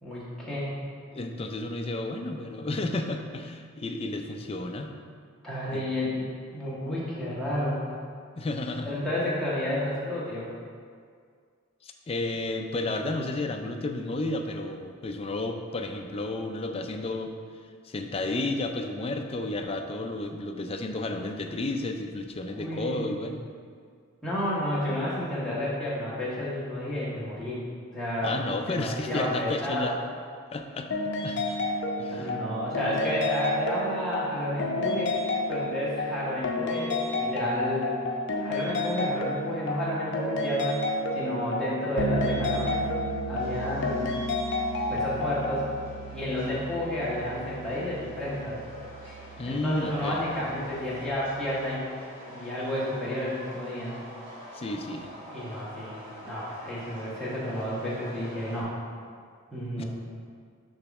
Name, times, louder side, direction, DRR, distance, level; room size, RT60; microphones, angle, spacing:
voice 1, 0.0-0.7 5.4-7.8 8.8-10.5 22.5-23.2 24.2-27.6 27.9-28.4 28.7-29.9 32.1-35.1 35.5-38.0 38.4-42.9 43.3-44.1 44.9-45.7 46.1-48.6 49.4-51.8 52.3-54.0 55.3-56.0 56.2-58.7 59.5-59.8, left 1 dB, 5° left, -9 dB, 1.6 m, -31 dB
voice 2, 1.1-4.9 5.7-5.8 8.4-9.0 11.8-17.3 17.8-23.4 28.2-30.0 30.5-30.9 31.2-31.6 32.0-32.4 49.4-50.2 54.5-55.1 59.8-59.9, left 2 dB, 25° left, 4 dB, 0.4 m, -32 dB
sound 1, 30.9-45.7, left 2 dB, 55° left, 0.7 m, -30 dB
Bass guitar, 42.0-51.6, right 6 dB, 60° right, 0.4 m, -38 dB
Subway metro underground, 42.5-58.6, equal, 25° right, 1.5 m, -47 dB
6.6 x 3.0 x 5.9 m, 2.1 s
head